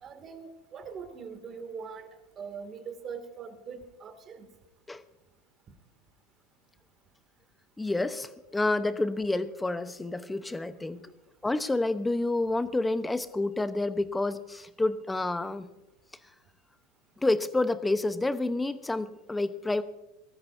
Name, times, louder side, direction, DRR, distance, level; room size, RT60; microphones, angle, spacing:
voice 1, 0.0-2.1 2.4-4.5, right 6 dB, 35° right, 7 dB, 2.4 m, -42 dB
voice 2, 7.8-11.1 11.4-15.7 17.2-19.8, left 2 dB, 10° left, 12 dB, 0.9 m, -29 dB
23.5 x 14.0 x 2.7 m, 0.99 s
hypercardioid pair, 90°, 0 cm